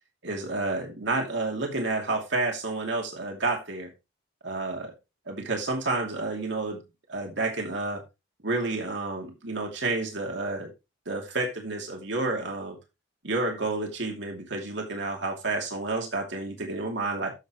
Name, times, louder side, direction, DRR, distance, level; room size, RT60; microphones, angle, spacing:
voice 1, 0.2-3.9 4.4-4.9 5.3-6.8 7.1-8.0 8.4-10.7 11.1-12.8 13.2-17.3, right 2 dB, 60° right, 2.5 m, -30 dB
14.0 x 6.6 x 3.1 m
head